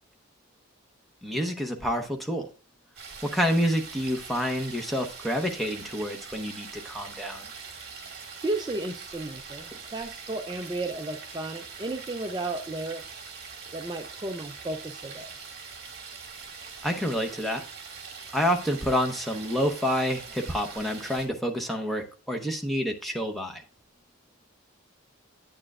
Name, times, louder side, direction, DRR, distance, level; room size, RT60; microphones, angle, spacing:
voice 1, 1.2-2.5 3.2-7.5 16.8-17.6 18.3-23.6, equal, ahead, 2 dB, 0.8 m, -28 dB
sound 1, 3.0-21.3, right 5 dB, 50° right, 2.0 m, -43 dB
voice 2, 8.4-13.2 13.7-15.3, right 2 dB, 20° right, 4 dB, 0.4 m, -33 dB
8.8 x 8.7 x 2.4 m, 0.35 s
head